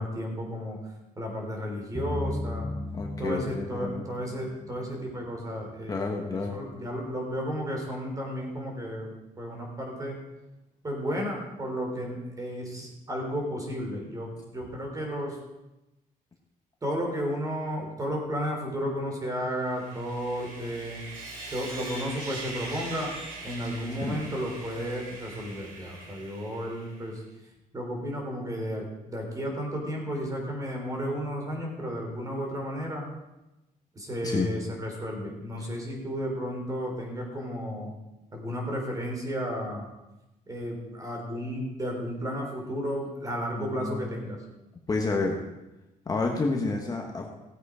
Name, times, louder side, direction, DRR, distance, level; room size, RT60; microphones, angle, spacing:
voice 1, 0.0-2.7 3.2-6.0 6.3-10.2 10.8-15.4 16.8-21.0 21.5-23.2 23.4-33.1 33.9-37.9 38.3-39.9 40.5-44.4, equal, 25° right, 1 dB, 3.6 m, -33 dB
sound 1, 1.9-5.7, left 1 dB, ahead, 1.1 m, -36 dB
voice 2, 2.9-4.0 5.9-6.6 24.0-24.2 34.2-34.5 43.6-44.0 44.9-45.4 46.0-47.3, left 3 dB, 25° left, 1 dB, 1.5 m, -29 dB
Sawing, 19.6-27.1, right 2 dB, 90° right, 3.7 m, -42 dB
16.5 x 8.1 x 5.0 m, 0.98 s
cardioid pair, 130°, 14 cm